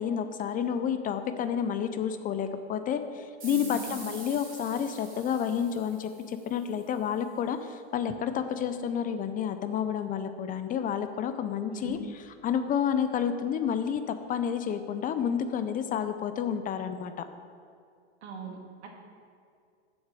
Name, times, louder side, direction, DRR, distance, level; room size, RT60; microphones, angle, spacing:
voice 1, 0.0-12.0 12.4-17.2, left 8 dB, 25° left, 9 dB, 0.5 m, -30 dB
sound 1, 3.4-6.7, right 3 dB, 25° right, 2.7 m, -45 dB
voice 2, 3.5-3.9 11.7-12.0 18.2-18.9, right 4 dB, 80° right, 1 dB, 1.9 m, -40 dB
7.1 x 6.5 x 7.5 m, 2.3 s
hypercardioid pair, 110°, 33 cm